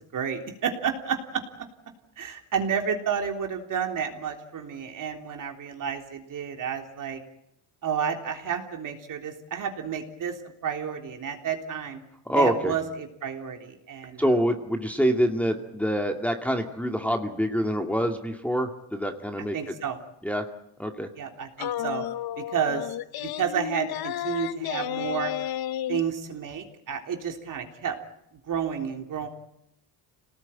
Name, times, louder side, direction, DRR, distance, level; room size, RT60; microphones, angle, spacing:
voice 1, 0.1-1.7 2.2-7.2 7.8-12.0 12.3-14.2 19.5-20.0 21.2-22.1 22.4-22.9 23.2-25.3 25.9-28.0 28.5-29.3, right 7 dB, 50° right, 3 dB, 3.7 m, -31 dB
voice 2, 12.3-12.7 14.2-19.6 20.2-20.4 20.8-21.1, equal, 5° left, 3 dB, 2.3 m, -26 dB
sound 1, 21.6-26.0, left 11 dB, 60° left, 1.0 m, -32 dB
27.0 x 19.0 x 9.2 m, 0.80 s
cardioid pair, 115°, 41 cm